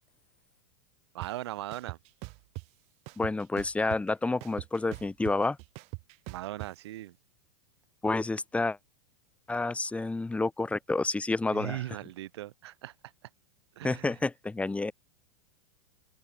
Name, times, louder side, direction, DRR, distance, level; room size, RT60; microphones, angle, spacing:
voice 1, 1.1-2.0 6.3-7.2 11.5-12.9 13.2-13.3 13.8-14.2, right 15 dB, 70° right, 7.9 m, -39 dB
sound 1, 1.2-1.3 1.7-2.7 3.1-4.1 4.4-6.7, right 31 dB, 50° right, 6.0 m, -41 dB
voice 2, 3.2-5.6 8.0-8.8 9.5-11.8 13.8-14.9, left 3 dB, 10° left, 7.3 m, -29 dB
open air
hypercardioid pair, 120°, 14 cm